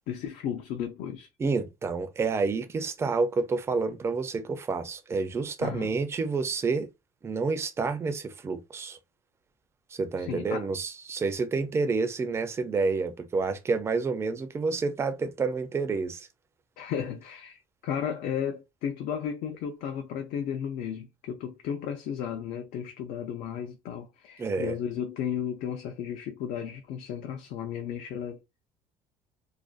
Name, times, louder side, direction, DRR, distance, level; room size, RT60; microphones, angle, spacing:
voice 1, 0.1-1.3 5.6-5.9 10.2-10.7 16.8-28.4, left 8 dB, 65° left, 0.4 m, -34 dB
voice 2, 1.4-6.9 7.2-9.0 9.9-16.3 24.4-24.8, right 4 dB, 15° right, 0.4 m, -29 dB
2.5 x 2.1 x 2.3 m
cardioid pair, 135°, 15 cm